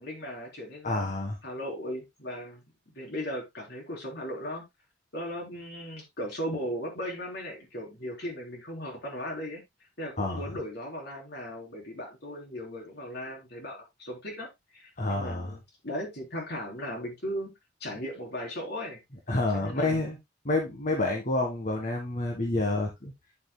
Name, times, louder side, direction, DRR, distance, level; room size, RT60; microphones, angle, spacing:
voice 1, 0.0-1.1 1.4-2.6 2.9-4.6 5.1-9.6 10.0-17.5 17.8-19.0 19.5-20.1, equal, 55° left, 3.7 m, -37 dB
voice 2, 0.8-1.4 10.2-10.4 15.0-15.5 19.3-20.2 20.4-23.1, left 2 dB, 40° left, 1.6 m, -28 dB
10.0 x 7.7 x 2.2 m
head